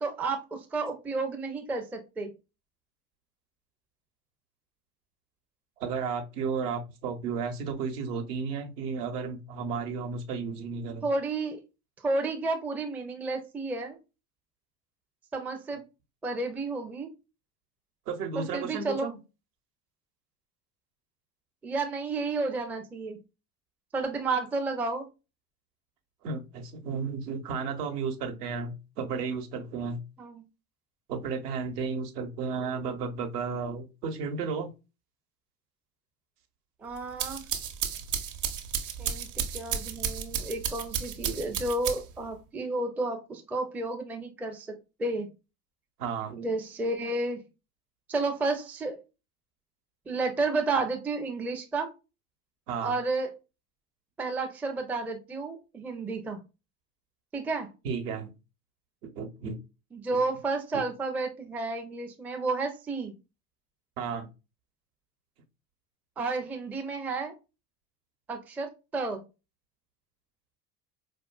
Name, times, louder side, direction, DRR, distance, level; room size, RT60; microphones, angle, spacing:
voice 1, 0.0-2.3 11.0-11.6 12.0-14.0 15.3-15.8 16.2-17.1 18.3-19.1 21.6-23.2 23.9-25.1 30.2-30.4 36.8-37.4 39.0-45.3 46.3-47.4 48.1-49.0 50.1-51.9 52.8-53.3 54.2-56.4 57.3-57.7 59.9-63.1 66.2-67.3 68.3-69.2, right 3 dB, 5° right, 4 dB, 0.4 m, -31 dB
voice 2, 5.8-11.1 18.1-19.2 26.2-30.0 31.1-34.7 46.0-46.4 52.7-52.9 57.8-58.3 59.1-59.6 60.7-60.8 64.0-64.3, right 5 dB, 65° right, 4 dB, 1.0 m, -33 dB
sound 1, 37.0-42.3, right 8 dB, 40° right, 0.8 m, -33 dB
4.4 x 2.6 x 2.3 m, 0.27 s
figure-of-eight pair, 65°, 49 cm